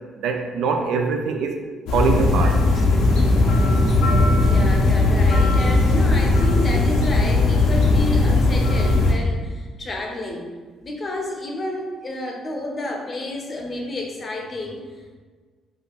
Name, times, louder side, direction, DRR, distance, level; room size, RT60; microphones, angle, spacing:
voice 1, 0.2-1.6 1.9-2.6, right 5 dB, 75° right, 4 dB, 0.3 m, -23 dB
sound 1, 1.9-9.1, left 2 dB, 80° left, 0.5 m, -18 dB
voice 2, 4.3-10.5 10.8-15.2, left 2 dB, 40° left, 1 dB, 0.6 m, -30 dB
3.7 x 2.3 x 2.4 m, 1.4 s
hypercardioid pair, 55°, 0 cm